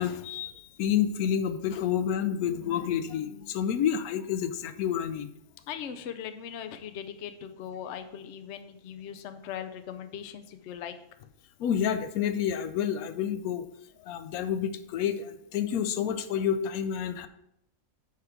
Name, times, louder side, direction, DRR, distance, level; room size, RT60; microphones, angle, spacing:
voice 1, 0.0-5.3 11.6-13.6 14.0-17.3, left 9 dB, 85° left, 11 dB, 1.0 m, -29 dB
voice 2, 5.7-10.9, left 8 dB, 60° left, 9 dB, 0.8 m, -39 dB
7.8 x 3.6 x 5.9 m, 0.77 s
omnidirectional pair, 1.5 m